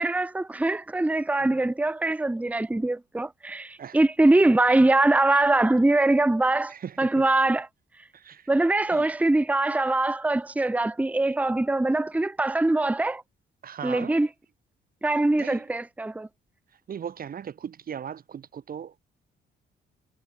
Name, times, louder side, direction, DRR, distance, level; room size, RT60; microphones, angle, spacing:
voice 1, 0.0-7.7 8.5-13.2 13.8-14.3 15.0-16.3, right 2 dB, 5° right, 0.8 m, -23 dB
voice 2, 6.7-7.2 8.1-8.5 8.9-9.1 13.6-14.2 15.4-15.6 16.9-19.0, right 8 dB, 45° right, 1.0 m, -38 dB
cardioid pair, 90°, 20 cm